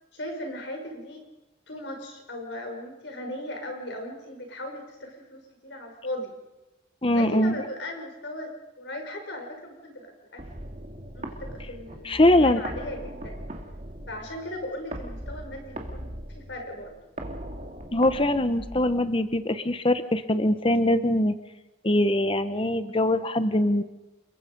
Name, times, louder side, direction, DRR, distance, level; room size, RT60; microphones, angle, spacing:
voice 1, 0.1-1.2 1.7-6.3 7.1-10.4 11.1-13.4 14.1-16.9, left 1 dB, 65° left, 3 dB, 5.5 m, -37 dB
voice 2, 7.0-7.6 12.0-12.6 17.9-21.3 21.8-23.8, left 1 dB, 30° left, 11 dB, 1.0 m, -22 dB
sound 1, 10.4-19.3, right 1 dB, 40° right, 2.5 m, -39 dB
28.5 x 22.5 x 5.3 m, 1.0 s
head